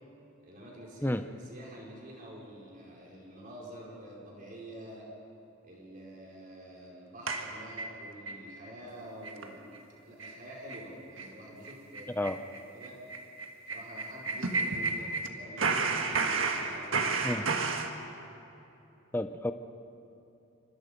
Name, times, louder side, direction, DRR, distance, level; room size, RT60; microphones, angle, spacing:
voice 1, 0.4-5.1 5.6-12.3 12.6-13.0 13.7-17.4, equal, 40° right, -3 dB, 5.2 m, -47 dB
sound 1, 7.3-8.4 8.8-8.9 9.2-9.5 9.7-9.8 10.2-10.4 10.7-10.9 11.2-11.3 11.6-15.3 15.6-17.9, right 4 dB, 65° right, 1.6 m, -32 dB
voice 2, 19.1-19.5, left 1 dB, 10° left, 9 dB, 0.7 m, -30 dB
28.0 x 25.5 x 5.3 m, 2.9 s
head